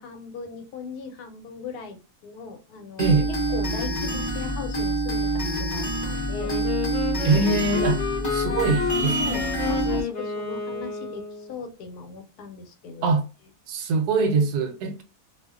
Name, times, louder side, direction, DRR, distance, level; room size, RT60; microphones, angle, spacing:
voice 1, 0.0-3.2 3.5-6.5 7.3-7.5 8.4-8.8 9.2-13.2, left 5 dB, 90° left, 1.2 m, -38 dB
sound 1, 3.0-10.0, right 1 dB, 15° left, 0.7 m, -27 dB
voice 2, 3.0-3.3 7.2-8.0 8.3-9.4 13.0-13.2 13.7-15.0, right 3 dB, 85° right, 1.2 m, -23 dB
Wind instrument woodwind instrument, 6.3-11.5, left 5 dB, 45° left, 0.9 m, -30 dB
2.8 x 2.0 x 2.3 m
omnidirectional pair, 1.7 m